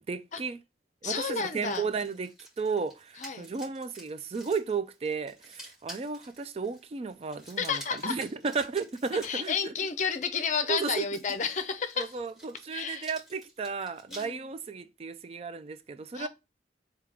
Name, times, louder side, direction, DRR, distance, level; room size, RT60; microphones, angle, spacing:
voice 1, 0.1-0.6 1.0-9.7 10.7-11.0 12.0-16.3, right 5 dB, 35° right, 0.3 m, -34 dB
voice 2, 1.0-1.8 3.2-3.5 7.6-8.2 9.2-12.1 12.7-13.1 14.1-14.5 16.1-16.3, left 6 dB, 40° left, 0.5 m, -31 dB
sound 1, 1.4-9.5 10.5-14.3, equal, 5° right, 1.6 m, -50 dB
3.6 x 2.8 x 4.6 m
head